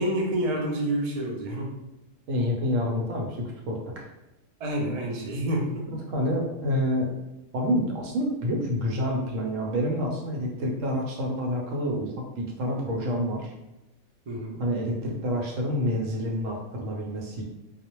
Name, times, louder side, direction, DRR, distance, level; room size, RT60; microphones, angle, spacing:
voice 1, 0.0-1.7 4.6-5.9 14.3-14.6, right 1 dB, 55° right, -1 dB, 0.4 m, -28 dB
voice 2, 2.3-3.9 5.9-7.1 7.5-13.5 14.6-17.4, equal, 85° right, -1 dB, 1.0 m, -28 dB
2.4 x 2.0 x 2.9 m, 0.96 s
omnidirectional pair, 1.3 m